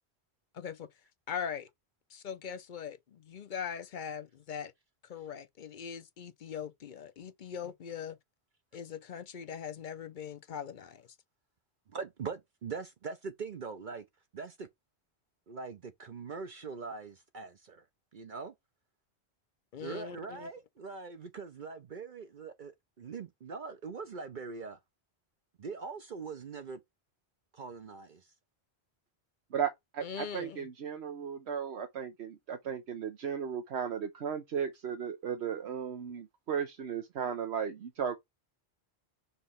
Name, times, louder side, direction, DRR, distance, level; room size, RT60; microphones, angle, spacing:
voice 1, 0.5-0.9 1.3-1.7 2.1-4.7 5.0-8.2 8.7-11.1 19.7-20.5 30.0-30.7, left 7 dB, 55° left, 0.7 m, -41 dB
voice 2, 11.9-14.0 14.3-14.7 15.5-17.8 18.1-18.5 19.8-24.8 25.6-26.8 27.5-28.2, right 5 dB, 50° right, 0.8 m, -42 dB
voice 3, 29.5-38.2, right 7 dB, 80° right, 1.1 m, -35 dB
5.6 x 3.1 x 5.6 m
omnidirectional pair, 1.1 m